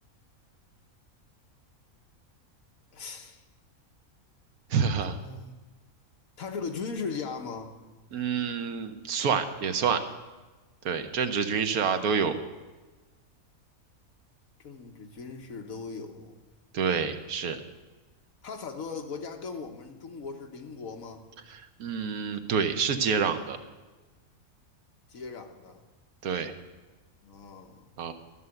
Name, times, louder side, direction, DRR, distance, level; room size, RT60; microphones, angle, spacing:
voice 1, 2.9-3.4 5.1-5.5 6.4-7.7 14.6-16.3 18.4-21.2 25.1-25.8 27.2-27.9, left 5 dB, 70° left, 4 dB, 1.5 m, -38 dB
voice 2, 4.7-5.2 8.1-10.0 10.8-12.4 16.7-17.6 21.5-23.6 26.2-26.5 28.0-28.1, right 6 dB, 85° right, 8 dB, 1.4 m, -28 dB
13.0 x 7.0 x 7.7 m, 1.2 s
omnidirectional pair, 1.5 m